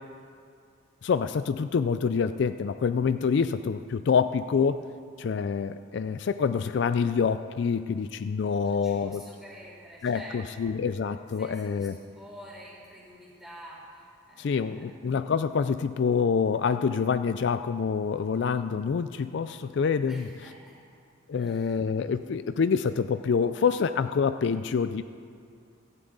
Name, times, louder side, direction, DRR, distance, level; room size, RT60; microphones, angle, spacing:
voice 1, 1.0-4.8 5.2-9.2 10.0-12.0 14.4-20.3 21.3-25.0, left 6 dB, 60° left, 11 dB, 0.3 m, -26 dB
voice 2, 8.6-10.7 11.4-11.9 12.1-15.1 20.1-20.7 21.4-21.7, right 1 dB, ahead, -6 dB, 3.9 m, -48 dB
16.5 x 15.0 x 3.9 m, 2.3 s
head